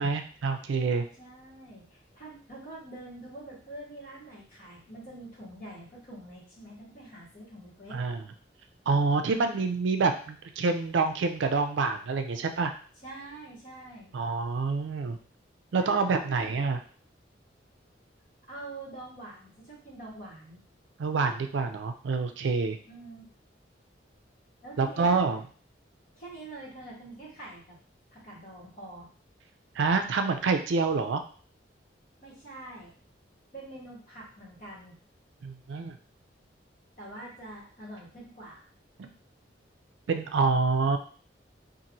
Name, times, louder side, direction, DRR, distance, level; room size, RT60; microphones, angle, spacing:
voice 1, 0.0-1.1 7.9-8.2 8.9-12.7 14.1-15.2 15.7-16.8 21.0-22.8 24.8-25.4 29.8-31.2 35.4-36.0 39.0-39.1 40.1-41.0, right 4 dB, 75° right, 7 dB, 0.4 m, -27 dB
voice 2, 1.2-8.0 9.2-9.4 13.0-14.1 15.8-16.6 18.5-20.6 22.9-23.3 24.6-25.2 26.2-27.8 28.1-29.1 32.2-32.9 33.5-35.0 37.0-38.6, right 2 dB, 45° left, -6 dB, 1.4 m, -45 dB
2.9 x 2.5 x 2.7 m, 0.42 s
head